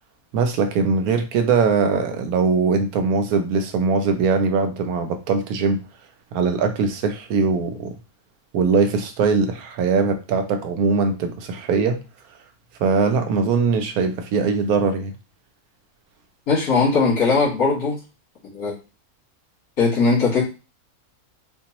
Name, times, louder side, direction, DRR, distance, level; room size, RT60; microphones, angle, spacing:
voice 1, 0.3-5.8 6.3-7.9 8.5-12.0 12.8-15.1, right 5 dB, 85° right, 7 dB, 1.1 m, -21 dB
voice 2, 16.5-18.0 18.5-18.7 19.8-20.4, left 4 dB, 80° left, -5 dB, 2.2 m, -19 dB
4.3 x 2.3 x 2.9 m, 0.31 s
omnidirectional pair, 1.5 m